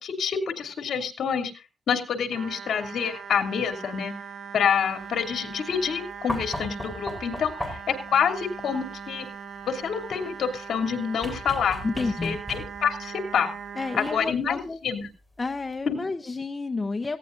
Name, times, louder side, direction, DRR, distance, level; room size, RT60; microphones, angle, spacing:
voice 1, 0.0-4.1 4.5-9.3 9.7-13.5 13.9-15.1 15.9-16.0, left 7 dB, 65° left, 5 dB, 2.8 m, -27 dB
sound 1, 2.3-14.2, right 6 dB, 75° right, 1.5 m, -40 dB
sound 2, 6.3-8.0 11.2-13.0 14.5-14.6, left 1 dB, ahead, 4.1 m, -36 dB
voice 2, 11.8-12.4 13.8-14.8 15.4-17.2, left 3 dB, 20° left, 7 dB, 0.8 m, -30 dB
18.0 x 16.5 x 2.6 m, 0.32 s
wide cardioid pair, 140°, 0 cm